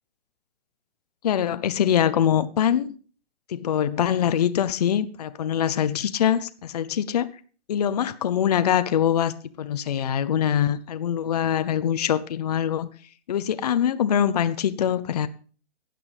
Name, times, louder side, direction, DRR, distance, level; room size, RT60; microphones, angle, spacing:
voice 1, 1.2-3.0 3.5-7.3 7.7-12.9 13.3-15.3, left 9 dB, 35° left, 0.5 m, -23 dB
16.0 x 9.1 x 3.3 m
hypercardioid pair, 155°, 35 cm